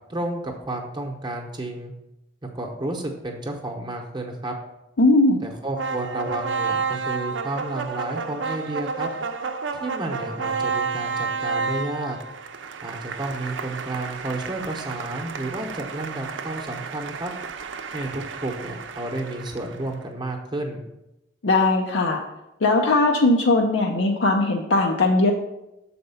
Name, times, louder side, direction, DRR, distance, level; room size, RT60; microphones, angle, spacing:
voice 1, 0.1-1.9 2.5-4.5 5.4-9.1 9.8-12.2 12.8-17.3 17.9-20.8, right 2 dB, 25° right, 1 dB, 0.8 m, -31 dB
voice 2, 5.0-5.4 21.4-22.2 22.6-25.3, left 2 dB, 85° left, 1 dB, 0.6 m, -19 dB
sound 1, 5.8-19.9, right 5 dB, 85° right, 0.5 m, -31 dB
6.5 x 4.2 x 5.5 m, 0.93 s
head